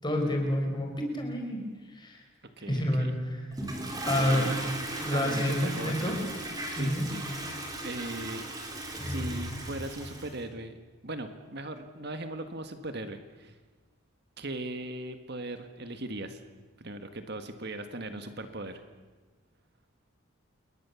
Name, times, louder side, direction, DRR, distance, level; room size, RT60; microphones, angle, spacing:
voice 1, 0.0-1.6 1.9-2.2 2.7-3.5 4.0-4.5 5.0-6.1 6.8-7.0, left 1 dB, 20° left, 2 dB, 4.8 m, -29 dB
voice 2, 2.6-3.1 4.1-4.8 5.1-6.1 6.7-7.2 7.8-8.5 9.0-10.8 11.0-13.6 14.4-16.4 16.8-18.8, right 2 dB, 50° right, 8 dB, 1.7 m, -38 dB
Toilet flush, 3.5-10.4, right 1 dB, 15° right, 4.1 m, -36 dB
28.5 x 21.5 x 7.1 m, 1.3 s
head